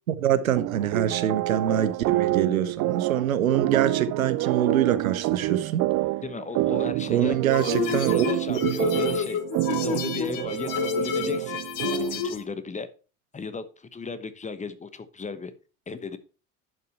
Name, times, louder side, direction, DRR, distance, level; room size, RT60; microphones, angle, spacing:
voice 1, 0.1-5.8 7.1-8.7, right 10 dB, 80° right, 0.9 m, -25 dB
sound 1, 0.6-12.3, right 16 dB, 45° right, 0.5 m, -28 dB
voice 2, 6.2-9.4 9.8-11.6 12.1-12.9 13.3-15.5 15.9-16.2, left 4 dB, 15° left, 1.1 m, -36 dB
sound 2, 7.5-12.4, left 8 dB, 50° left, 1.4 m, -29 dB
11.0 x 5.7 x 4.5 m
figure-of-eight pair, 65°, 41 cm